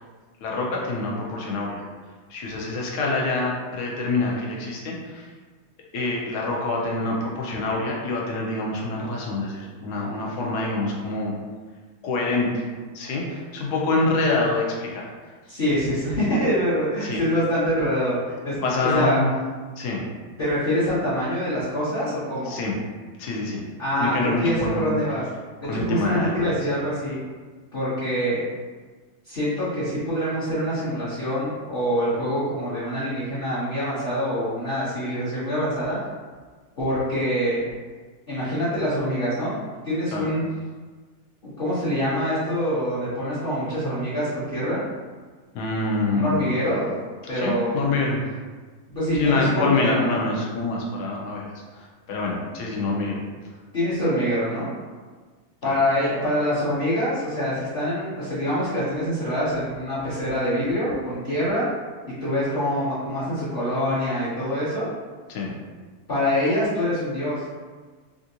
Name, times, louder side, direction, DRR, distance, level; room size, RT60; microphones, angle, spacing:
voice 1, 0.4-1.8 2.3-5.3 5.9-11.3 12.0-12.6 12.9-15.1 15.5-15.6 17.0-17.2 18.6-19.3 19.8-20.0 22.5-22.7 23.2-23.6 24.0-24.9 25.6-26.8 40.1-40.3 45.5-46.6 47.3-48.2 49.1-53.2 55.6-55.8 65.3-65.5, left 3 dB, 80° left, -2 dB, 1.2 m, -26 dB
voice 2, 15.5-19.2 20.4-22.6 23.8-25.2 25.7-27.2 27.7-28.4 29.2-36.0 36.8-37.6 38.3-39.5 39.8-40.5 41.4-44.8 46.1-46.9 47.3-47.8 48.9-50.2 53.7-54.7 55.6-61.7 62.2-64.9 66.1-67.4, equal, 45° left, -13 dB, 0.9 m, -25 dB
3.4 x 2.5 x 2.7 m, 1.4 s
omnidirectional pair, 1.7 m